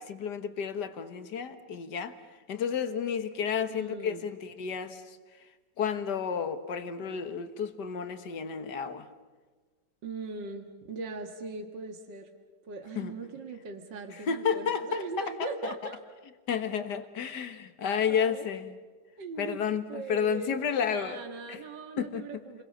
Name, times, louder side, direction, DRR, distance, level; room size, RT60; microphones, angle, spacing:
voice 1, 0.0-2.1 2.5-5.0 5.8-9.1 13.0-13.1 14.3-15.2 15.6-15.7 16.5-18.8 19.4-21.2 21.5-21.6 22.0-22.3, left 7 dB, 70° left, 9 dB, 2.0 m, -31 dB
voice 2, 3.7-4.3 10.0-12.3 12.7-16.0 18.1-18.5 19.2-22.6, right 3 dB, 80° right, 4 dB, 2.4 m, -40 dB
30.0 x 23.0 x 6.7 m, 1.4 s
omnidirectional pair, 1.9 m